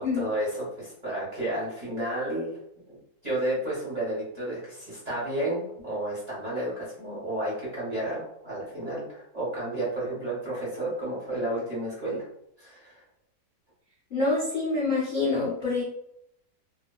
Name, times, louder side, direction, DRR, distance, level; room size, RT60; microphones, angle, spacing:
voice 1, 0.0-2.5 2.9-3.0 3.2-12.3 12.6-13.0, right 1 dB, 35° right, -8 dB, 0.7 m, -31 dB
voice 2, 14.1-15.8, left 3 dB, 55° left, -8 dB, 0.5 m, -26 dB
2.9 x 2.0 x 2.2 m, 0.74 s
omnidirectional pair, 1.8 m